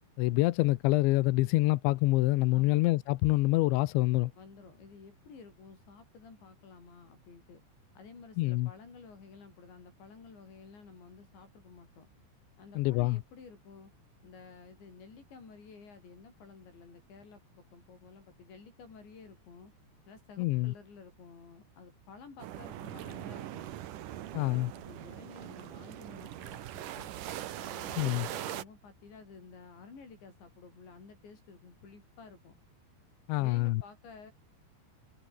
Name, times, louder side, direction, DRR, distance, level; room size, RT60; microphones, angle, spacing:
voice 1, 0.2-4.3 8.4-8.7 12.8-13.2 20.4-20.7 24.3-24.7 28.0-28.3 33.3-33.8, left 19 dB, 90° left, 3.1 m, -26 dB
voice 2, 2.5-2.8 4.4-7.6 8.0-12.1 12.6-13.9 14.2-17.4 17.7-19.7 20.1-23.7 24.3-27.1 27.6-32.5 33.4-34.3, left 5 dB, 70° left, 9.6 m, -52 dB
sound 1, 22.4-28.6, right 12 dB, 65° right, 2.2 m, -41 dB
omnidirectional pair, 5.3 m